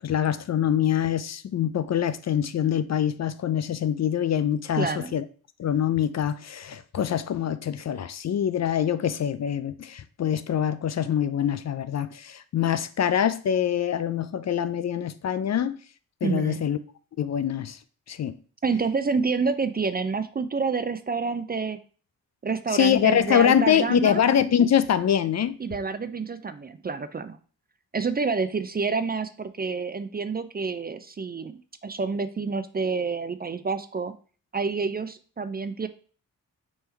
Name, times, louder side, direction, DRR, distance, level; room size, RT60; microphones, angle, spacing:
voice 1, 0.0-5.2 5.6-15.8 16.2-16.8 17.2-17.8 18.1-18.4 22.7-25.5, left 9 dB, 50° left, 0.4 m, -24 dB
voice 2, 4.7-5.2 16.2-16.6 18.6-21.8 22.4-24.2 25.6-27.4 27.9-34.1 34.5-35.9, right 4 dB, 25° right, 0.4 m, -28 dB
3.3 x 3.2 x 4.4 m
supercardioid pair, 45°, 37 cm